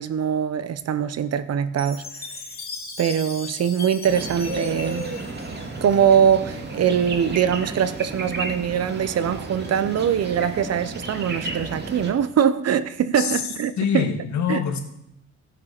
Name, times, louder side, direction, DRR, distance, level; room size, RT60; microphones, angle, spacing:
voice 1, 0.0-2.1 3.0-5.1 5.8-14.1 14.5-14.8, right 8 dB, 55° right, 0.9 m, -22 dB
Chime, 1.8-6.1, left 3 dB, 30° left, 2.7 m, -38 dB
sound 1, 4.1-12.1, right 2 dB, 35° right, 2.3 m, -33 dB
voice 2, 13.8-14.8, left 7 dB, 70° left, 2.1 m, -24 dB
16.0 x 6.8 x 6.0 m
cardioid pair, 90°, 30 cm